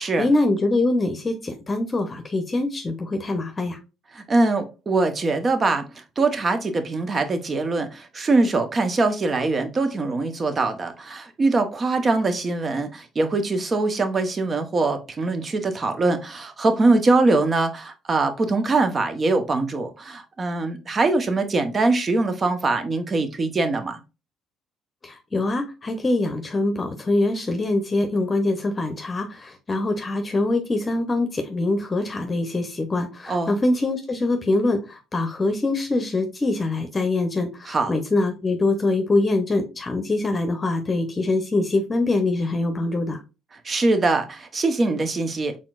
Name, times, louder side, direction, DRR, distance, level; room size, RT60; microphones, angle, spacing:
voice 1, 0.0-3.8 25.0-43.2, left 2 dB, 30° left, 0.8 m, -24 dB
voice 2, 4.1-5.9 6.2-24.0 33.3-33.5 37.7-37.9 43.6-45.6, right 3 dB, 40° right, 0.9 m, -22 dB
4.3 x 3.7 x 2.4 m
supercardioid pair, 65°, 0 cm